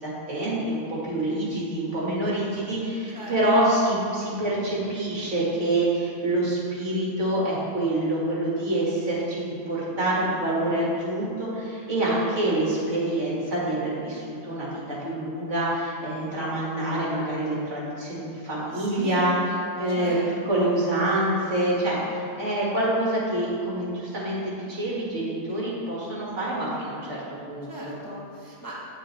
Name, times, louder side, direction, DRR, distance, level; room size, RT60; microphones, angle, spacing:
voice 1, 0.0-19.4 19.8-20.2 20.4-27.9, right 1 dB, 55° right, -6 dB, 2.0 m, -26 dB
voice 2, 18.7-19.2 19.8-20.7 27.7-28.8, equal, 15° left, -5 dB, 0.7 m, -39 dB
8.7 x 6.7 x 3.1 m, 2.6 s
omnidirectional pair, 1.6 m